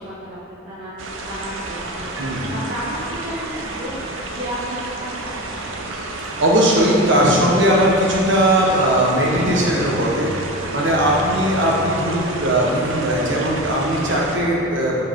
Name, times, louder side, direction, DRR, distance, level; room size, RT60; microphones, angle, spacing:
voice 1, 0.0-5.7, equal, 30° right, -13 dB, 1.3 m, -33 dB
sound 1, 1.0-14.4, right 2 dB, 90° right, 0.7 m, -31 dB
voice 2, 2.2-2.5 6.4-10.3 10.7-15.0, right 1 dB, 65° right, -3 dB, 1.3 m, -18 dB
8.0 x 4.7 x 3.7 m, 2.8 s
head